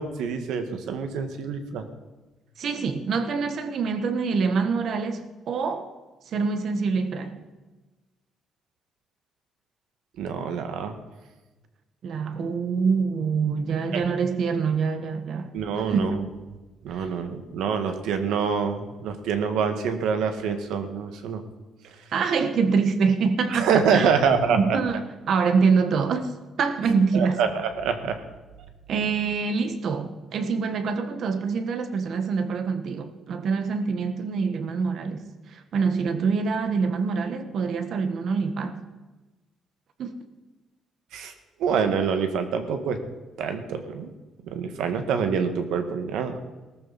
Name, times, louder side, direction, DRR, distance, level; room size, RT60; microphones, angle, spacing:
voice 1, 0.0-1.8 10.2-10.9 13.9-14.0 15.5-16.2 16.8-21.4 23.5-24.8 27.1-28.2 41.1-41.3 41.6-43.0 43.4-44.1 44.5-46.4, right 6 dB, 85° right, 7 dB, 1.8 m, -26 dB
voice 2, 2.6-5.9 6.3-7.4 12.0-16.1 16.9-17.1 22.1-24.2 24.5-26.3 26.6-27.4 28.9-38.8 40.0-40.2, right 5 dB, 45° right, 9 dB, 1.4 m, -25 dB
18.5 x 14.0 x 4.2 m, 1.2 s
cardioid pair, 175°, 0 cm